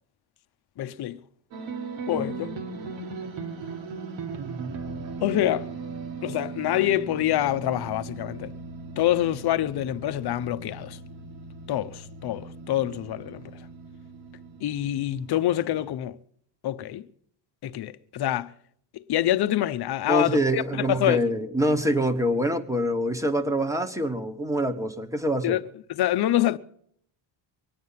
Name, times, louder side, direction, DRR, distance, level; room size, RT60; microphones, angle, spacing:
voice 1, 0.8-1.2 2.1-2.5 5.2-5.7 6.2-8.5 9.0-11.0 11.7-13.4 14.6-16.2 16.6-17.1 17.6-18.5 18.9-21.3 25.4-25.6 25.9-26.6, left 13 dB, 50° left, 0.8 m, -26 dB
sound 1, 1.5-15.9, right 4 dB, 70° right, 2.0 m, -38 dB
voice 2, 20.1-25.6, equal, 5° right, 1.3 m, -25 dB
23.5 x 9.4 x 5.7 m
cardioid pair, 120°, 48 cm